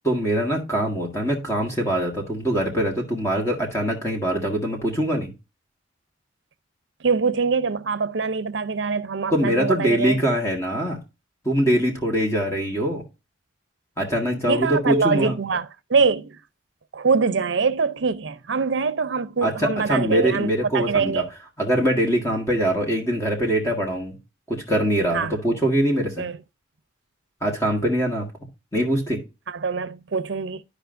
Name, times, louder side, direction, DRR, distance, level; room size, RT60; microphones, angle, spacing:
voice 1, 0.0-5.3 9.3-11.0 11.4-13.0 14.0-15.3 19.4-21.2 21.6-24.2 24.5-26.2 27.4-28.3 28.7-29.2, right 1 dB, 15° left, 1.6 m, -23 dB
voice 2, 7.0-10.2 14.5-16.4 16.9-21.3 25.1-25.3 26.2-26.4 29.5-30.6, right 5 dB, 60° right, 0.6 m, -24 dB
12.5 x 5.0 x 2.5 m
head